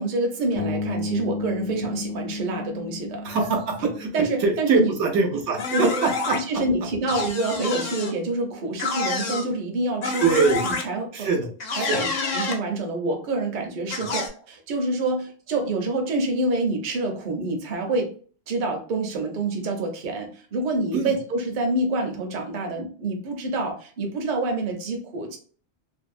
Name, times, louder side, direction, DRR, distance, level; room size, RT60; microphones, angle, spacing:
voice 1, 0.0-3.3 3.8-4.9 5.7-5.9 6.3-10.2 10.6-11.3 11.8-12.1 12.3-18.1 18.5-25.4, right 2 dB, 50° right, 2 dB, 0.7 m, -27 dB
Bass guitar, 0.6-4.6, left 3 dB, 85° left, 0.9 m, -32 dB
voice 2, 3.2-4.1 4.4-6.6 10.2-10.6 11.1-11.5 11.8-12.0 14.0-14.1 20.9-21.1, right 4 dB, 85° right, 3 dB, 0.9 m, -23 dB
sound 1, 5.6-6.4 7.1-8.1 8.8-9.5 10.0-10.8 11.6-12.6 13.9-14.3, left 3 dB, 55° left, 0.5 m, -28 dB
2.6 x 2.0 x 2.4 m, 0.42 s
omnidirectional pair, 1.2 m